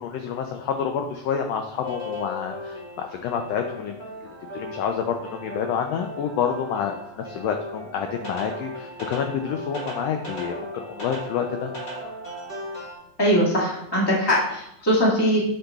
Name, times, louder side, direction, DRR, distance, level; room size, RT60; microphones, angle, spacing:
voice 1, 0.0-4.0 4.5-11.7, left 7 dB, 80° left, 4 dB, 1.5 m, -28 dB
sound 1, 1.8-13.0, equal, 35° left, 0.8 m, -37 dB
voice 2, 13.2-15.4, equal, 10° left, -6 dB, 1.4 m, -21 dB
7.6 x 6.7 x 2.3 m, 0.82 s
omnidirectional pair, 3.4 m